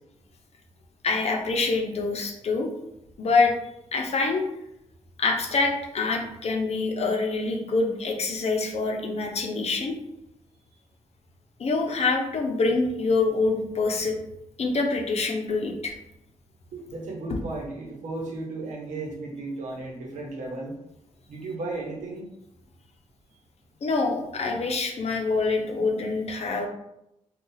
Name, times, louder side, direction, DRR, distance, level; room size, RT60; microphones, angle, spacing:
voice 1, 1.0-2.7 3.2-3.5 3.9-4.5 5.2-10.0 11.6-14.2 14.6-15.9 23.8-26.7, left 3 dB, 60° left, 2 dB, 0.6 m, -25 dB
voice 2, 16.7-20.7 21.3-22.3, right 2 dB, 90° right, -1 dB, 0.8 m, -35 dB
2.6 x 2.3 x 3.8 m, 0.84 s
cardioid pair, 60°, 12 cm